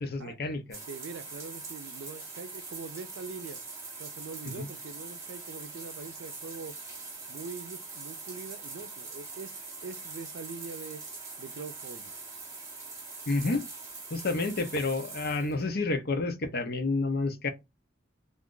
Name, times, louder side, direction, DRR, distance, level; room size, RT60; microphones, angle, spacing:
voice 1, 0.0-0.8 4.5-4.7 13.3-13.6 14.1-17.5, left 3 dB, 55° left, 0.7 m, -30 dB
sound 1, 0.7-15.7, right 3 dB, 15° right, 1.0 m, -43 dB
voice 2, 0.9-3.6 4.0-6.7 7.3-11.0 11.4-12.1, right 4 dB, 80° right, 0.4 m, -43 dB
2.5 x 2.4 x 3.7 m
head